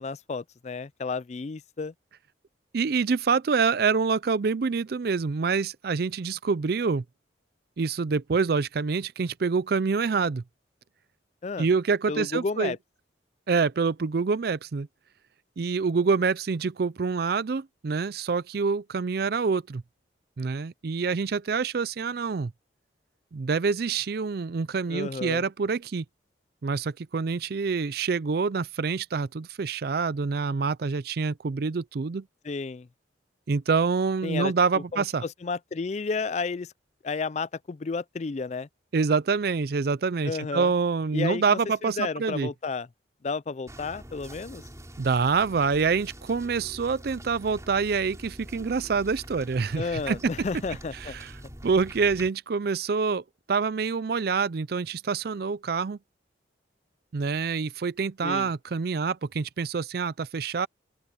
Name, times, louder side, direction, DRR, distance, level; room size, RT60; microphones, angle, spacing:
voice 1, 0.0-1.9 11.4-11.7 12.1-12.8 24.9-25.4 32.4-32.9 34.2-36.7 37.0-38.7 40.2-40.7 41.1-42.9 43.2-44.6 49.8-51.2 51.4-51.5 58.2-58.5, left 4 dB, 35° left, 0.4 m, -32 dB
voice 2, 2.7-7.0 7.8-10.4 11.6-12.7 13.5-14.9 15.6-19.8 20.4-22.5 23.3-26.0 26.6-32.2 33.5-35.2 38.9-42.5 45.0-50.2 51.0-51.3 51.6-56.0 57.1-60.7, right 5 dB, 55° right, 0.4 m, -26 dB
sound 1, 43.7-52.3, right 1 dB, 15° right, 4.8 m, -45 dB
open air
head